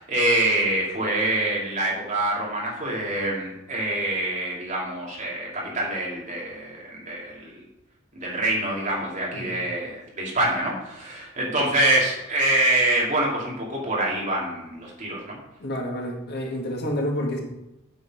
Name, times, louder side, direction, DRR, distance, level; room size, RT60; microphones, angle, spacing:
voice 1, 0.0-7.6 8.1-15.4, right 1 dB, 35° right, -4 dB, 2.7 m, -25 dB
voice 2, 15.6-17.4, equal, 50° left, 0 dB, 1.7 m, -29 dB
8.5 x 7.3 x 4.9 m, 0.90 s
head